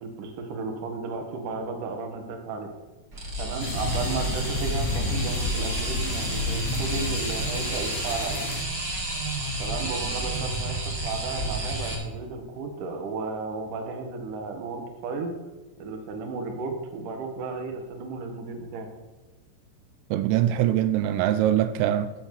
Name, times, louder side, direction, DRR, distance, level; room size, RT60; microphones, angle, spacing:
voice 1, 0.0-2.7 3.4-8.4 9.6-15.3 15.8-18.9, right 4 dB, 60° right, 2.3 m, -34 dB
sound 1, 3.1-11.9, right 2 dB, 30° right, 1.8 m, -30 dB
sound 2, 3.6-8.6, left 3 dB, 85° left, 3.9 m, -31 dB
voice 2, 20.1-22.1, right 12 dB, 85° right, 3.2 m, -23 dB
14.0 x 5.8 x 6.8 m
omnidirectional pair, 5.8 m